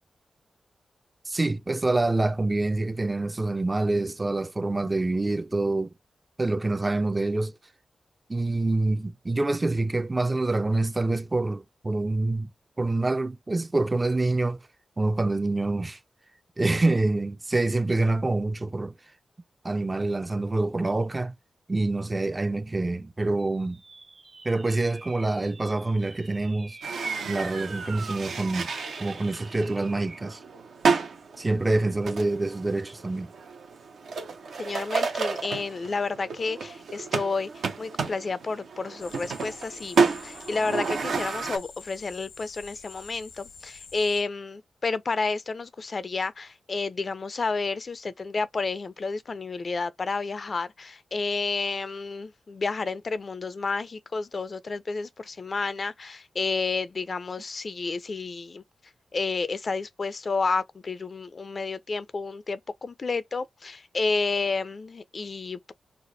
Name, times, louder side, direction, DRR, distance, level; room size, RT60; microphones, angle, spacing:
voice 1, 1.3-5.9 6.4-7.5 8.3-12.5 12.8-14.6 15.0-16.0 16.6-18.9 19.6-21.3 21.7-23.8 24.4-26.8 27.2-28.7 29.0-30.4 31.4-33.3, right 2 dB, 30° right, 0.4 m, -26 dB
sound 1, 23.4-30.3, right 3 dB, 60° right, 1.2 m, -49 dB
sound 2, 26.8-41.6, right 5 dB, 80° right, 0.7 m, -31 dB
voice 2, 34.6-58.6 59.1-65.7, left 4 dB, 55° left, 0.4 m, -30 dB
sound 3, 39.0-44.2, left 4 dB, 85° left, 0.8 m, -47 dB
3.3 x 2.1 x 3.8 m
cardioid pair, 50°, 0 cm